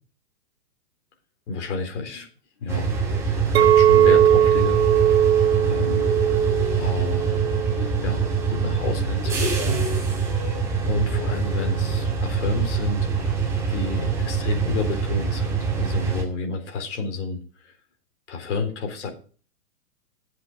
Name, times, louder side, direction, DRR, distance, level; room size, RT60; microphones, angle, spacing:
voice 1, 1.5-2.3 2.6-2.9 3.6-5.3 5.6-6.1 6.8-7.4 7.7-9.8 10.8-13.3 13.7-17.7 18.3-19.1, left 4 dB, 45° left, 4 dB, 4.0 m, -30 dB
sound 1, 2.6-5.4 5.7-8.6 8.9-12.4, left 8 dB, 30° left, 1.4 m, -38 dB
sound 2, 2.7-16.2, right 5 dB, 5° right, 2.2 m, -25 dB
Chink clink, 3.5-8.8, right 10 dB, 40° right, 1.1 m, -20 dB
14.0 x 8.0 x 5.0 m, 0.39 s
hypercardioid pair, 170°, 48 cm